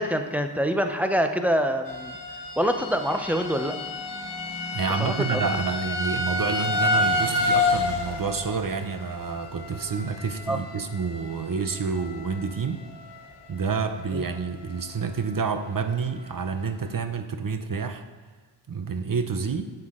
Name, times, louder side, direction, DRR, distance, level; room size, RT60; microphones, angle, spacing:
voice 1, 0.0-2.2 2.6-3.8 5.0-5.4 10.5-10.6 14.1-14.2, equal, 5° right, 6 dB, 0.7 m, -25 dB
sound 1, 1.9-12.5 12.8-13.3 13.8-13.9 14.3-14.4, left 2 dB, 60° left, 1.1 m, -29 dB
voice 2, 4.7-12.9 13.5-18.0 18.7-19.7, right 5 dB, 45° right, 8 dB, 0.7 m, -28 dB
9.3 x 6.8 x 3.7 m, 1.5 s
cardioid pair, 60°, 45 cm